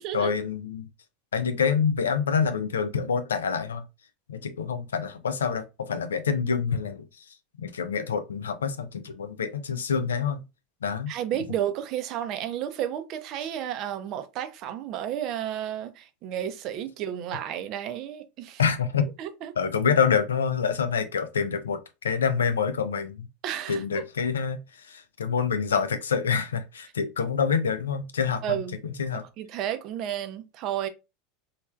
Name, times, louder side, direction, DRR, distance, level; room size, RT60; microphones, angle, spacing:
voice 1, 0.1-0.9 1.3-3.8 4.3-7.1 7.6-10.4 10.8-11.1 18.6-19.1 19.6-21.8 22.0-23.3 23.7-24.6 24.9-28.4 28.8-29.2, left 6 dB, 85° left, 0.4 m, -26 dB
voice 2, 11.1-18.6 19.2-19.5 23.4-24.0 28.4-28.8 29.4-30.9, right 10 dB, 50° right, 0.5 m, -32 dB
3.1 x 2.3 x 2.3 m
hypercardioid pair, 85°, 0 cm